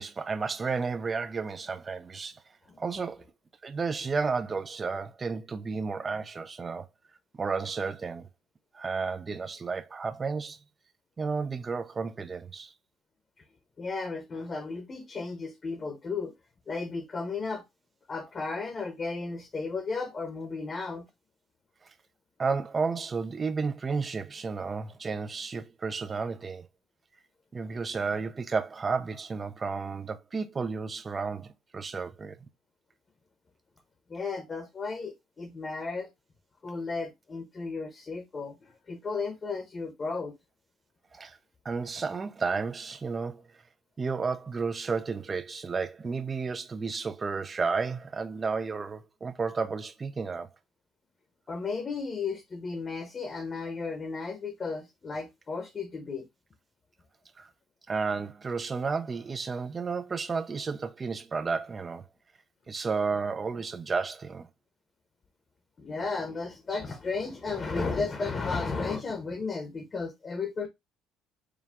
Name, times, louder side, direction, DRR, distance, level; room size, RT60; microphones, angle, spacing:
voice 1, 0.0-2.4 2.8-3.2 3.6-6.9 7.4-8.3 8.7-10.6 11.2-12.7 22.4-26.7 27.5-32.4 41.1-41.4 41.7-43.4 44.0-50.5 57.4-57.5 57.9-62.1 62.7-64.5, right 4 dB, 25° right, 0.4 m, -32 dB
voice 2, 13.8-16.3 16.7-17.6 18.1-21.0 34.1-36.1 36.6-40.3 51.5-56.2 65.8-70.7, left 4 dB, 25° left, 0.8 m, -34 dB
4.9 x 2.3 x 3.4 m
cardioid pair, 130°, 0 cm